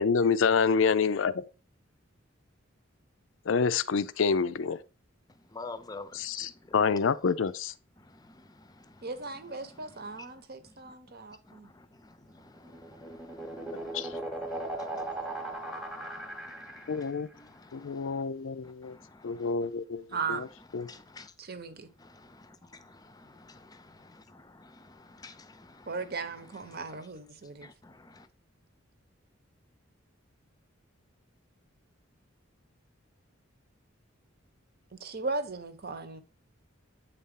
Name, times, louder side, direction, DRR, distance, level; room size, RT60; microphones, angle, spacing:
voice 1, 0.0-1.3 3.5-4.8 6.1-7.7 13.9-14.1 16.9-17.3 17.7-18.9 19.2-20.0 20.3-20.5 20.7-20.9, left 5 dB, 70° left, 0.5 m, -27 dB
voice 2, 5.5-6.5 13.1-14.2 14.8-15.1 15.4-18.2 18.9-19.5 20.9-21.3 22.0-22.5 22.8-25.9 27.8-28.2, left 3 dB, 20° left, 0.6 m, -49 dB
voice 3, 9.0-11.7 20.1-20.4 21.4-21.9 25.9-27.7 34.9-36.2, right 4 dB, 50° right, 0.9 m, -37 dB
sound 1, 12.4-17.2, right 1 dB, ahead, 0.9 m, -38 dB
8.1 x 4.2 x 3.7 m
head